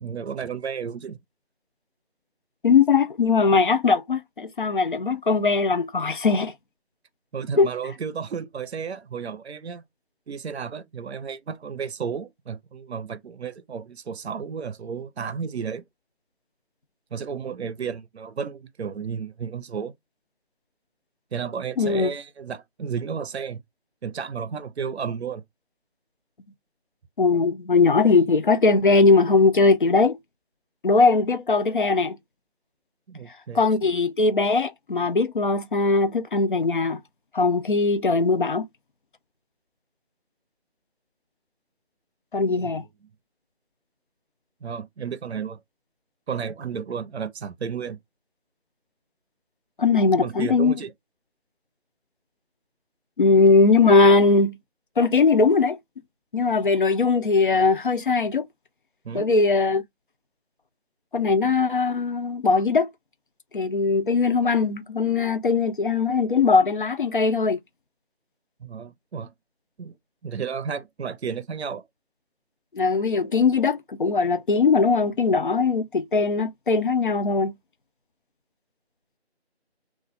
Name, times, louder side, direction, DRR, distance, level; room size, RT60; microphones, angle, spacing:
voice 1, 0.0-1.2 7.3-9.8 10.3-15.8 17.1-19.9 21.3-23.6 24.0-25.4 33.1-34.0 42.5-42.7 44.6-45.6 46.3-48.0 50.2-50.9 59.0-59.3 68.6-69.3 69.8-70.0 70.2-71.9, right 6 dB, 75° right, 0.6 m, -33 dB
voice 2, 2.6-6.5 7.6-7.7 21.8-22.1 27.2-30.2 30.8-32.2 33.5-37.0 37.3-38.6 42.3-42.8 49.8-50.7 53.2-54.6 55.0-55.8 56.3-58.5 59.1-59.8 61.1-62.9 63.5-67.6 72.7-77.5, left 4 dB, 50° left, 0.5 m, -20 dB
2.4 x 2.1 x 3.9 m
figure-of-eight pair, 165°, 33 cm